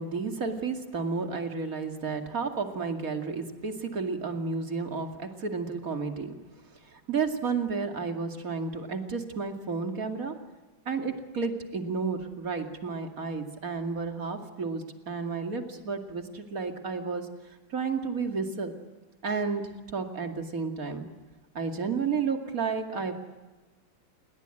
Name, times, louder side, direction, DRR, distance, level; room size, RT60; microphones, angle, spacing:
voice 1, 0.0-6.4 6.8-10.3 10.9-18.7 19.2-19.6 19.9-21.0 21.5-23.1, right 5 dB, 45° right, 5 dB, 2.7 m, -32 dB
28.5 x 21.5 x 9.1 m, 1.2 s
omnidirectional pair, 2.1 m